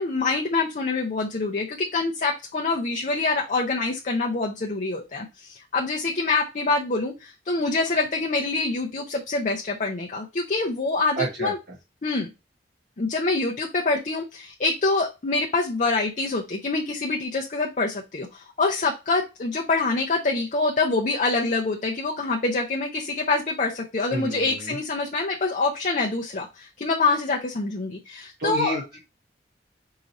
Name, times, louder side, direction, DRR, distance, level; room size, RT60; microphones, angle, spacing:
voice 1, 0.0-11.6 12.0-12.3 13.0-28.8, left 3 dB, 45° left, 1 dB, 0.6 m, -25 dB
voice 2, 11.2-11.5 24.1-24.8 28.4-29.0, right 2 dB, 60° right, -4 dB, 1.1 m, -30 dB
4.8 x 2.8 x 4.0 m, 0.26 s
head